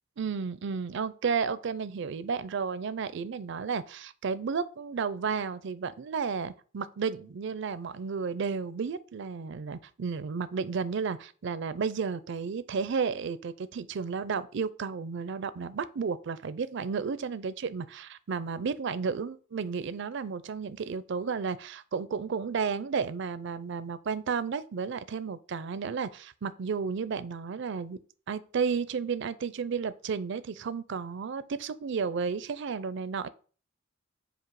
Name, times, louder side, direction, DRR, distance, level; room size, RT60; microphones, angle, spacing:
voice 1, 0.2-28.0 28.3-33.3, right 5 dB, 60° right, 0.4 m, -32 dB
7.4 x 2.7 x 4.6 m
head